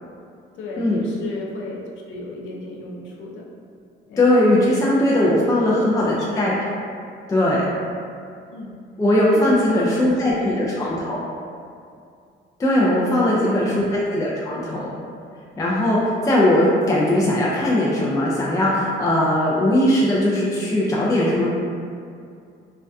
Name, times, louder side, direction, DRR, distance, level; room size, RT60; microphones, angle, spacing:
voice 1, 0.5-3.5 4.1-4.3 5.1-6.5 8.5-8.7 9.3-11.1 13.0-13.7, left 2 dB, 75° left, -3 dB, 0.5 m, -35 dB
voice 2, 4.2-6.5 7.3-7.7 9.0-11.3 12.6-14.9 15.6-21.5, left 1 dB, 15° left, -6 dB, 0.3 m, -19 dB
2.2 x 2.1 x 2.5 m, 2.4 s
cardioid pair, 90°, 20 cm